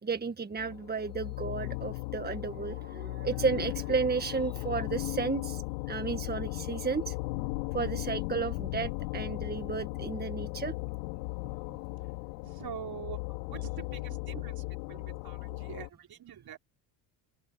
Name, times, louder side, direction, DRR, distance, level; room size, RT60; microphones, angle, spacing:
voice 1, 0.0-5.6 5.9-7.1 7.7-10.8, right 5 dB, 20° right, 1.6 m, -33 dB
sound 1, 0.6-15.9, left 23 dB, 80° left, 3.9 m, -37 dB
voice 2, 12.6-13.2 13.5-14.6 14.9-16.6, right 9 dB, 45° right, 4.6 m, -44 dB
open air
hypercardioid pair, 75°, 48 cm